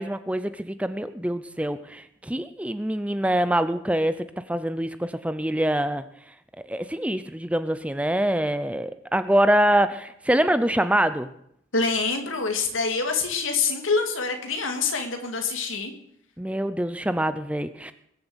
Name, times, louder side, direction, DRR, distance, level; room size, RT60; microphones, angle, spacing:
voice 1, 0.0-6.0 6.6-11.3 16.4-17.9, right 1 dB, 5° right, 12 dB, 0.6 m, -25 dB
voice 2, 11.7-15.9, left 4 dB, 80° left, 5 dB, 2.7 m, -26 dB
21.5 x 7.9 x 8.1 m, 0.70 s
head